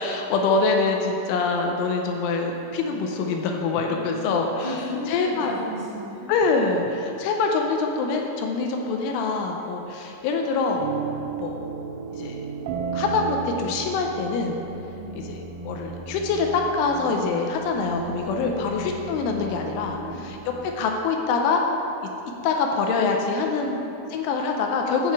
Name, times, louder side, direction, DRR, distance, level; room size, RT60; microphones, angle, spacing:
voice 1, 0.0-4.5 5.1-5.5 6.3-10.8 11.4-11.6 12.1-12.4 12.9-14.6 15.6-20.0 20.2-20.4 20.8-21.6 22.0-22.1 22.4-23.8 24.1-25.1, left 4 dB, 85° left, 2 dB, 3.1 m, -24 dB
voice 2, 3.9-6.3 14.9-15.2 18.4-18.9 19.9-20.4 23.6-24.1, left 1 dB, 55° right, -11 dB, 1.1 m, -36 dB
sound 1, 10.8-20.7, right 5 dB, 90° right, 3.3 m, -35 dB
10.5 x 7.6 x 4.8 m, 2.8 s
omnidirectional pair, 5.8 m